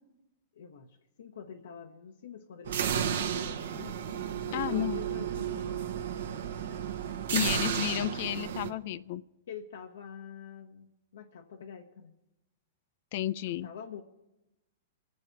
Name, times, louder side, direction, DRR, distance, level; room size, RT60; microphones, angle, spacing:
voice 1, 0.5-5.8 9.5-12.1 13.4-14.0, left 7 dB, 85° left, 1 dB, 1.0 m, -46 dB
sound 1, 2.6-8.7, right 9 dB, 75° right, 1.2 m, -33 dB
voice 2, 4.5-5.0 7.3-9.2 13.1-13.7, left 13 dB, 55° left, 16 dB, 0.4 m, -32 dB
24.5 x 8.5 x 4.6 m, 1.0 s
hypercardioid pair, 135°, 0 cm